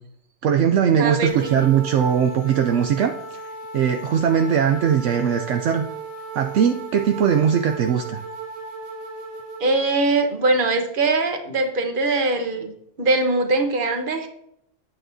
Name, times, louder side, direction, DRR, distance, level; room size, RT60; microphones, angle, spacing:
voice 1, 0.4-3.4 3.7-5.9 6.3-8.2, right 8 dB, 70° right, 6 dB, 0.9 m, -20 dB
voice 2, 1.0-1.7 9.6-14.3, right 2 dB, 45° right, 5 dB, 1.2 m, -22 dB
sound 1, 1.3-9.8, right 3 dB, 75° left, 3.5 m, -36 dB
9.0 x 8.8 x 2.7 m, 0.73 s
omnidirectional pair, 1.3 m